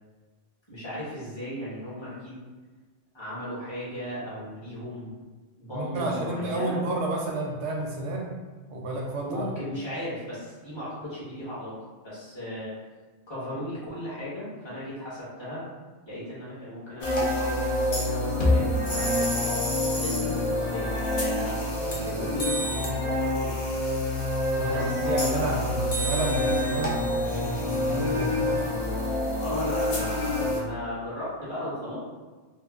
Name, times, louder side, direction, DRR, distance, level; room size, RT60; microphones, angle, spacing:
voice 1, 0.7-2.4 3.1-5.2 5.6-6.8 9.2-12.7 13.3-15.6 16.0-21.6 21.9-23.6 24.6-25.8 29.4-32.0, equal, 25° left, -11 dB, 1.0 m, -37 dB
voice 2, 5.7-8.3 8.7-9.5 24.5-28.4, right 2 dB, 80° right, -1 dB, 0.9 m, -31 dB
sound 1, 17.0-30.6, left 1 dB, 50° left, 0.5 m, -26 dB
3.0 x 2.0 x 2.3 m, 1.3 s
omnidirectional pair, 1.2 m